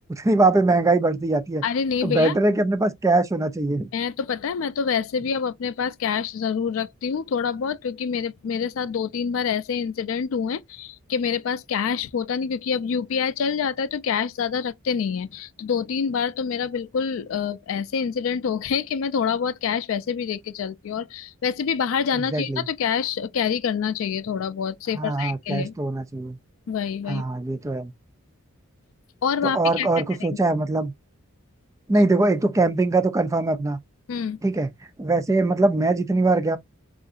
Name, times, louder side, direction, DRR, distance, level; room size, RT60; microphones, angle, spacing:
voice 1, 0.2-1.6 2.0-3.9 22.3-22.6 25.0-26.4 27.1-27.9 29.4-30.9 31.9-33.8 34.4-34.7 35.0-36.6, right 2 dB, 15° right, 0.3 m, -22 dB
voice 2, 1.6-2.4 3.9-25.7 26.7-27.2 29.2-29.9 30.2-30.3 34.1-34.4, left 6 dB, 65° left, 0.3 m, -26 dB
3.7 x 2.4 x 2.4 m
head